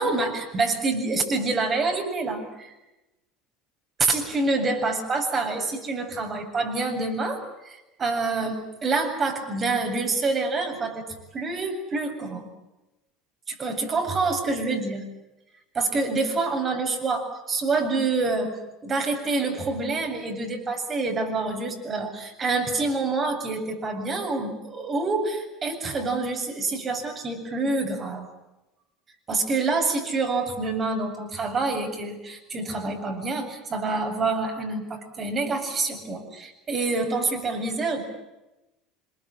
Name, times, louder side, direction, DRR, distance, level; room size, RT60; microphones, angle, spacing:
voice 1, 0.0-2.7 4.0-11.1 11.3-12.5 13.5-15.1 15.7-18.5 18.8-28.3 29.3-38.0, right 3 dB, 30° right, 4 dB, 7.6 m, -27 dB
27.0 x 23.0 x 9.0 m, 0.99 s
figure-of-eight pair, 70°, 0 cm